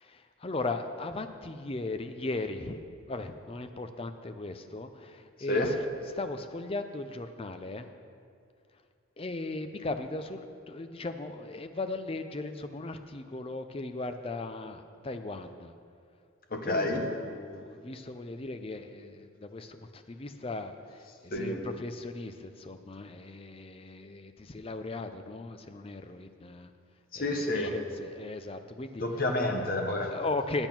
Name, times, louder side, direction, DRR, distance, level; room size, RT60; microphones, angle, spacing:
voice 1, 0.0-2.8 3.1-5.7 6.1-7.9 9.2-15.7 16.6-26.7 27.2-29.0 30.1-30.7, left 2 dB, 25° left, 8 dB, 0.5 m, -37 dB
voice 2, 16.5-17.1 21.3-21.6 27.1-27.7 29.0-30.1, left 2 dB, 45° left, 3 dB, 1.0 m, -29 dB
8.9 x 8.8 x 5.9 m, 2.3 s
head